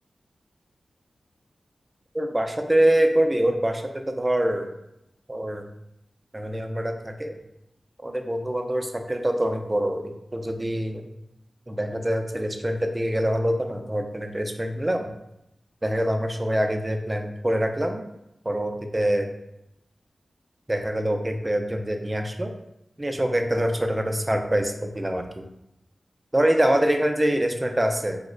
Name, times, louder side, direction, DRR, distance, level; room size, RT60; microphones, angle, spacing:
voice 1, 2.1-4.7 5.3-5.7 6.3-7.4 8.0-11.0 11.7-15.1 15.8-18.0 18.5-19.3 20.7-22.5 23.0-25.4 26.3-28.2, right 1 dB, 20° right, 4 dB, 0.3 m, -25 dB
2.9 x 2.0 x 3.7 m, 0.84 s
wide cardioid pair, 95°, 0 cm